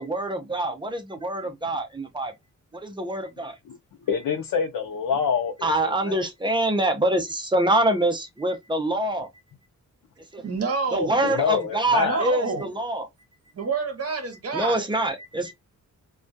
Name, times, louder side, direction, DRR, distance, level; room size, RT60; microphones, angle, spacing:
voice 1, 0.0-2.3 2.7-3.6 5.6-9.3 10.3-10.4 10.9-13.1 14.5-15.5, right 1 dB, 15° right, 0.5 m, -25 dB
voice 2, 4.1-6.2 11.2-12.2, left 6 dB, 80° left, 0.5 m, -26 dB
voice 3, 10.4-11.2 12.0-12.7 13.5-14.9, right 4 dB, 50° right, 0.8 m, -28 dB
2.2 x 2.2 x 2.5 m
wide cardioid pair, 145°, 32 cm